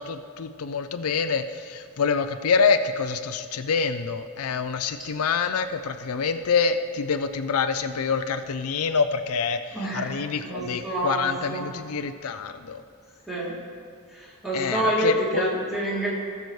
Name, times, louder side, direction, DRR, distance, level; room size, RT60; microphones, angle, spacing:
voice 1, 0.0-12.8 14.5-15.4, left 5 dB, 85° left, 9 dB, 0.5 m, -26 dB
voice 2, 9.7-11.7 13.3-13.5 14.1-16.1, right 1 dB, ahead, -8 dB, 2.9 m, -28 dB
19.0 x 6.7 x 3.2 m, 2.2 s
head